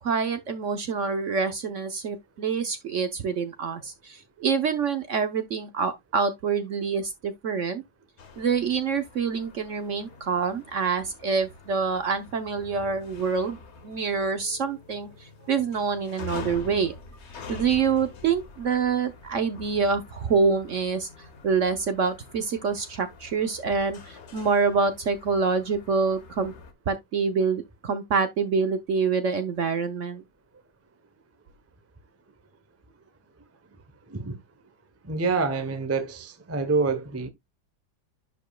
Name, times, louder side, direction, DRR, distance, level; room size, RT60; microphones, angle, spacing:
voice 1, 0.0-7.8 8.4-16.9 17.5-26.5 26.9-30.2, right 5 dB, 55° right, 0.9 m, -26 dB
sound 1, 8.2-26.7, left 4 dB, 45° left, 1.1 m, -46 dB
voice 2, 35.0-37.3, right 4 dB, 20° right, 0.3 m, -27 dB
10.5 x 5.1 x 2.3 m
omnidirectional pair, 2.0 m